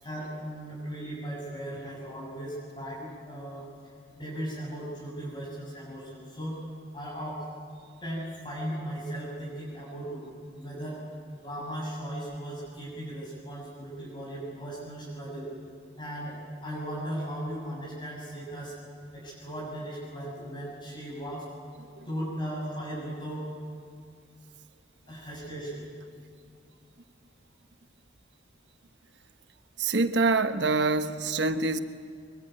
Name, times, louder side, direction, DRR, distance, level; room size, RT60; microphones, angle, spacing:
voice 1, 0.0-3.7 4.1-6.6 6.9-7.4 8.0-11.0 11.4-15.5 16.0-18.8 19.1-21.5 22.1-23.5 25.1-25.8, right 1 dB, 25° left, 6.9 m, -37 dB
voice 2, 29.8-31.8, right 3 dB, 65° right, 1.2 m, -25 dB
24.0 x 23.5 x 9.1 m
head